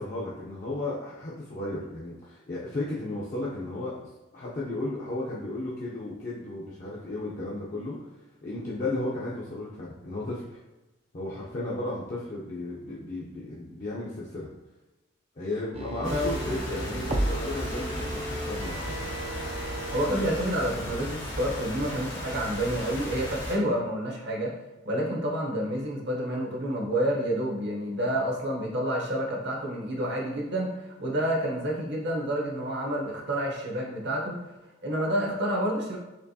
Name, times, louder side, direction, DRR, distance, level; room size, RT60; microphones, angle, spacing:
voice 1, 0.0-8.0 8.4-10.6 11.1-14.5 15.4-19.0, left 2 dB, 40° left, -7 dB, 0.6 m, -34 dB
sound 1, 15.7-20.2 20.5-20.6, right 1 dB, 30° right, 0.3 m, -34 dB
sound 2, 16.0-23.6, equal, 85° left, 1.5 m, -36 dB
voice 2, 19.9-24.5 24.8-34.4 34.8-36.0, equal, 55° right, -1 dB, 0.8 m, -29 dB
4.4 x 3.1 x 2.7 m, 1.0 s
head